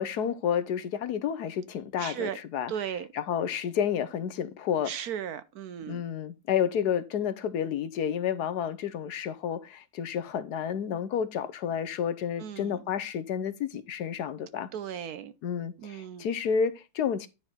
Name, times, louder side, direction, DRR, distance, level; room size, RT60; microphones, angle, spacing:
voice 1, 0.0-2.7 3.1-4.9 5.9-14.7 15.4-17.3, left 8 dB, 65° left, 1.2 m, -30 dB
voice 2, 2.0-2.4 2.7-3.1 4.8-6.0 12.4-12.8 14.7-15.3 15.8-16.3, right 9 dB, 65° right, 1.0 m, -36 dB
10.5 x 4.6 x 4.2 m
omnidirectional pair, 2.0 m